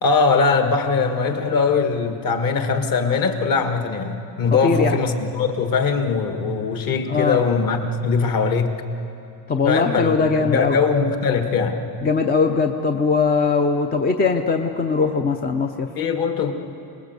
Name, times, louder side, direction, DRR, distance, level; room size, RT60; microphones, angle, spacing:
voice 1, 0.0-8.8 9.6-11.9 16.0-16.5, left 5 dB, 40° left, 6 dB, 1.8 m, -21 dB
voice 2, 4.6-5.0 7.1-7.4 9.5-10.8 12.0-15.9, left 4 dB, 20° left, 5 dB, 0.6 m, -20 dB
27.0 x 20.0 x 8.1 m, 2.8 s
cardioid pair, 155°, 50 cm